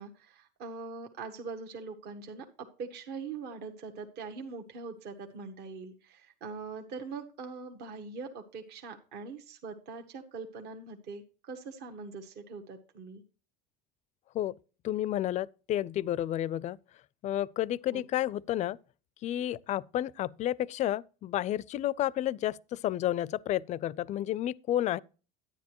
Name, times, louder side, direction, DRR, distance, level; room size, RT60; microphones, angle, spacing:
voice 1, 0.0-13.2 17.9-18.0, right 4 dB, 55° right, 1.3 m, -42 dB
voice 2, 14.8-16.8 17.2-18.8 19.2-25.0, left 12 dB, 35° left, 0.4 m, -31 dB
10.0 x 9.7 x 3.0 m
supercardioid pair, 105°, 21 cm